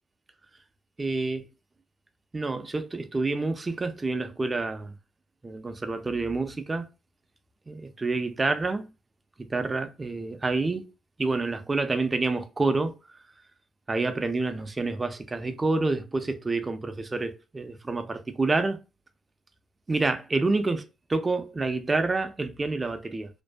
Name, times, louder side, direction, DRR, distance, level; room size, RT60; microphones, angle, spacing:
voice 1, 1.0-1.5 2.3-4.9 5.4-6.9 7.7-8.9 9.4-10.9 11.2-13.0 13.9-18.8 19.9-23.3, right 3 dB, 25° right, 0.4 m, -28 dB
2.6 x 2.3 x 2.2 m
cardioid pair, 90°, 0 cm